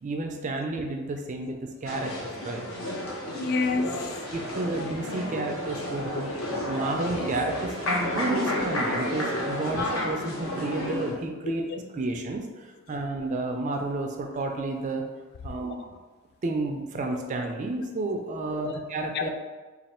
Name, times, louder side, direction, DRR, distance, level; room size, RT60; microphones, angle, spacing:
voice 1, 0.0-2.7 4.3-6.3 6.7-11.7 12.0-15.1 15.4-15.9 16.4-19.3, right 2 dB, 35° right, 3 dB, 0.4 m, -31 dB
sound 1, 1.8-11.1, left 1 dB, 70° left, 0.9 m, -31 dB
voice 2, 3.3-4.0 6.6-6.7 11.6-11.8 18.5-18.7 19.1-19.3, left 4 dB, 50° left, 5 dB, 0.3 m, -29 dB
3.2 x 2.3 x 4.2 m, 1.3 s
head